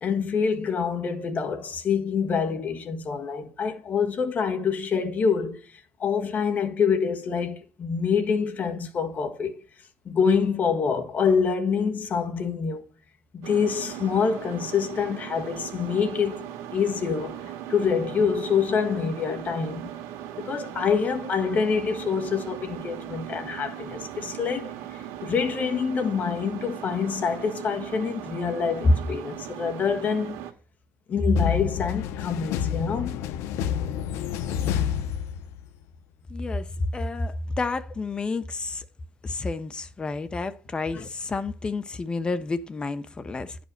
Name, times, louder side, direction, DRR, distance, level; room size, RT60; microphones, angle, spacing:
voice 1, 0.0-9.6 10.0-12.8 13.3-19.9 20.4-30.4 31.1-33.2 40.9-41.1, left 5 dB, 35° left, 1.5 m, -26 dB
sound 1, 13.4-30.5, right 11 dB, 85° right, 1.7 m, -38 dB
sound 2, 31.4-35.8, left 9 dB, 75° left, 0.9 m, -29 dB
voice 2, 36.3-38.8 39.2-43.6, left 3 dB, 20° left, 0.9 m, -30 dB
10.5 x 5.1 x 6.6 m
cardioid pair, 145°, 5 cm